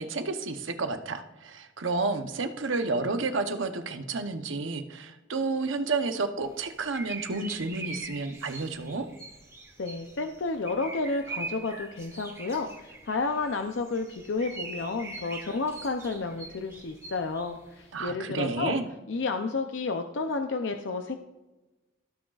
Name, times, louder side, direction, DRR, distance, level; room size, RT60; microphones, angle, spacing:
voice 1, 0.0-9.1 17.9-18.8, right 3 dB, 75° right, 7 dB, 0.8 m, -31 dB
sound 1, 6.4-18.0, right 3 dB, 15° right, 1.1 m, -43 dB
voice 2, 9.8-18.8 19.1-21.2, left 3 dB, 65° left, 5 dB, 0.6 m, -31 dB
16.5 x 6.3 x 2.4 m, 1.1 s
head